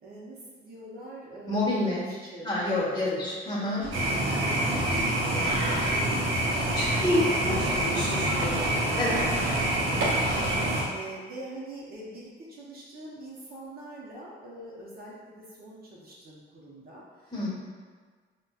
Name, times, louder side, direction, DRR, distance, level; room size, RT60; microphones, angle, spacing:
voice 1, 0.0-3.0 3.9-8.7 9.8-17.5, right 1 dB, 50° right, -6 dB, 0.7 m, -43 dB
voice 2, 1.5-2.0 2.4-3.9 6.1-6.2 6.7-8.5 8.9-9.4 17.3-17.5, left 1 dB, 20° left, -7 dB, 1.1 m, -28 dB
sound 1, 3.8-4.3 4.7-6.1 6.6-7.0 7.5-7.9 8.4-9.8 10.3-10.7, left 3 dB, 50° left, 0.6 m, -44 dB
sound 2, 3.9-10.8, right 1 dB, 85° right, 0.6 m, -26 dB
3.9 x 2.2 x 2.3 m, 1.5 s
cardioid pair, 90°, 20 cm